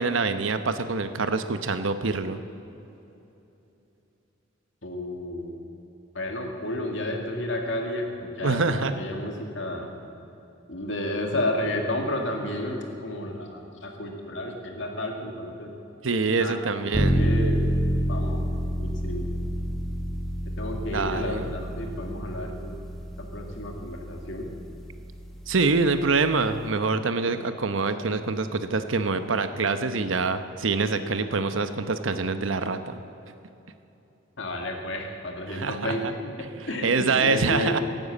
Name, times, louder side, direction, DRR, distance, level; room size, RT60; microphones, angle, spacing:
voice 1, 0.0-2.4 8.4-8.9 16.0-17.2 20.9-21.5 25.5-33.0 35.5-36.1 36.8-37.8, right 4 dB, 85° right, 10 dB, 0.9 m, -25 dB
voice 2, 4.8-5.5 6.1-9.9 10.7-15.7 16.4-16.6 16.9-17.7 18.1-19.3 20.6-22.8 23.2-24.5 34.4-37.7, left 1 dB, 70° left, 2 dB, 2.2 m, -32 dB
sound 1, 16.9-26.7, equal, ahead, 1.4 m, -29 dB
17.0 x 9.2 x 8.4 m, 3.0 s
head